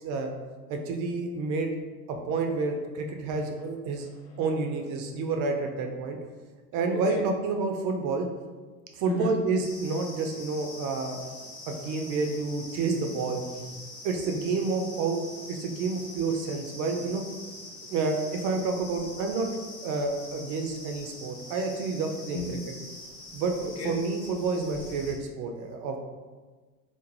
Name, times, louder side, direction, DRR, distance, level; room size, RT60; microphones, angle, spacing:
voice 1, 0.7-1.7 2.1-4.1 4.4-6.2 6.7-8.3 9.0-11.2 11.7-13.4 14.0-15.2 15.5-17.2 17.9-19.5 19.8-22.6 23.3-23.5 23.8-26.0, right 4 dB, 40° right, 3 dB, 0.4 m, -29 dB
voice 2, 4.0-4.4 6.9-7.3 9.0-9.5 11.2-11.3 11.9-12.2 13.3-13.7 14.2-14.4 22.3-22.6 23.6-24.1, left 4 dB, 35° left, 0 dB, 0.5 m, -36 dB
sound 1, 9.6-25.1, left 2 dB, 70° left, 0.9 m, -44 dB
2.5 x 2.1 x 3.1 m, 1.4 s
hypercardioid pair, 75°, 48 cm